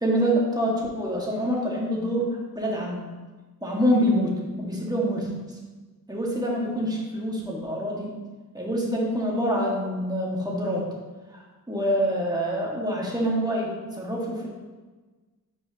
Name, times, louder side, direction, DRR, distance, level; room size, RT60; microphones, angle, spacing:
voice 1, 0.0-3.1 3.6-5.3 6.1-8.1 8.5-10.9 11.3-11.4 11.7-13.7 14.0-14.5, equal, 10° right, -3 dB, 1.7 m, -26 dB
9.0 x 4.7 x 2.9 m, 1.3 s
cardioid pair, 75°, 35 cm